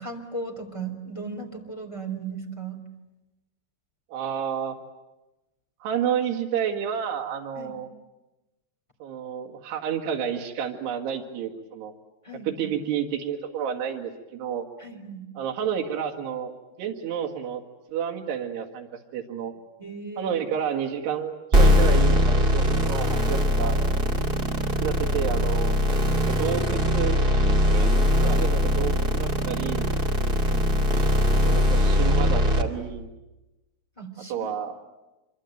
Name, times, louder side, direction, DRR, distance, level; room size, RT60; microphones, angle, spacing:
voice 1, 0.0-2.8 7.5-7.8 12.2-12.6 14.8-15.3 19.8-20.4 30.4-30.8 34.0-34.5, right 4 dB, 10° left, 3 dB, 2.6 m, -37 dB
voice 2, 4.1-4.8 5.8-7.9 9.0-11.9 12.5-14.7 15.4-16.5 16.8-17.6 17.9-19.5 20.2-23.8 24.8-25.8 26.2-27.2 27.7-29.9 31.3-33.1 34.3-34.8, right 8 dB, 85° right, 3 dB, 3.8 m, -30 dB
sound 1, 21.5-32.6, equal, 25° right, 1.2 m, -21 dB
26.5 x 24.0 x 9.2 m, 1.0 s
omnidirectional pair, 4.7 m